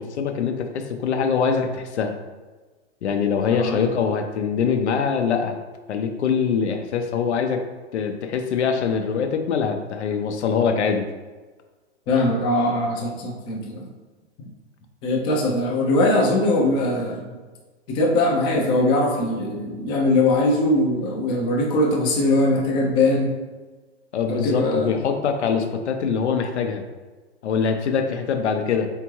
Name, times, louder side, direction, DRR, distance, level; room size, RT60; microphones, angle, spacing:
voice 1, 0.0-2.2 3.0-5.6 5.9-7.6 7.9-11.1 24.1-26.8 27.4-28.9, left 6 dB, 80° left, 5 dB, 0.6 m, -23 dB
voice 2, 3.5-3.8 12.1-13.9 15.0-17.3 17.9-23.3 24.3-24.9, left 2 dB, 15° left, 0 dB, 0.4 m, -21 dB
3.6 x 3.5 x 3.0 m, 1.3 s
hypercardioid pair, 140°, 34 cm